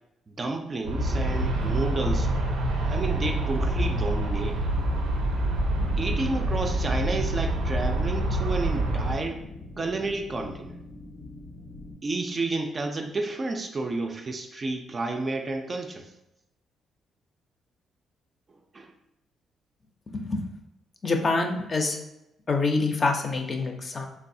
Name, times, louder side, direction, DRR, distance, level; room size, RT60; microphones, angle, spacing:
voice 1, 0.3-2.3 2.9-4.6 6.0-9.4 9.8-10.8 12.0-16.1 18.7-18.9, right 2 dB, 35° right, 4 dB, 0.3 m, -31 dB
Aircraft, 0.8-9.2, right 1 dB, 90° right, 0.5 m, -26 dB
sound 1, 5.7-11.9, left 2 dB, 90° left, 0.7 m, -42 dB
voice 2, 20.1-20.4 21.0-22.0 22.5-24.1, left 3 dB, 35° left, 3 dB, 0.4 m, -26 dB
3.3 x 2.3 x 2.6 m, 0.86 s
cardioid pair, 90°, 0 cm